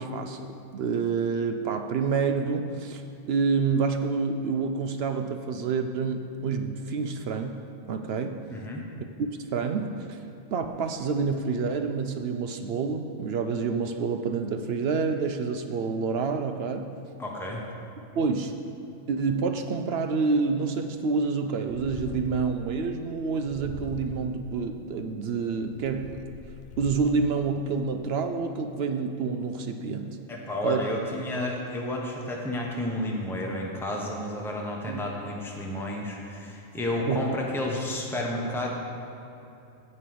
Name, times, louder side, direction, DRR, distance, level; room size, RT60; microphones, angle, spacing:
voice 1, 0.0-3.0 3.3-8.4 9.2-16.9 18.2-18.5 19.1-26.3 26.8-30.2 30.6-30.8 34.9-35.0 37.0-37.4, right 5 dB, 65° right, 6 dB, 0.7 m, -28 dB
voice 2, 8.5-8.8 17.2-17.6 30.3-38.7, left 1 dB, ahead, -1 dB, 0.9 m, -31 dB
Purr, 21.6-22.7 23.4-24.5 25.2-27.3, left 7 dB, 65° left, 0.5 m, -42 dB
8.3 x 5.4 x 7.7 m, 2.9 s
omnidirectional pair, 1.3 m